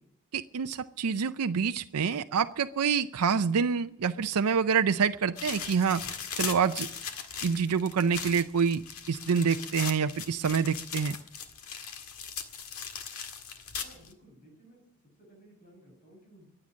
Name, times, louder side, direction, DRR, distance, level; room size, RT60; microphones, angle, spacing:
voice 1, 0.3-6.0 6.4-6.9 7.4-8.8 9.1-11.2, right 6 dB, 85° right, 9 dB, 0.5 m, -27 dB
sound 1, 5.4-14.1, left 6 dB, 75° left, 1.8 m, -39 dB
voice 2, 13.8-16.5, right 1 dB, 35° left, 1 dB, 6.7 m, -57 dB
23.0 x 8.8 x 6.3 m, 0.68 s
head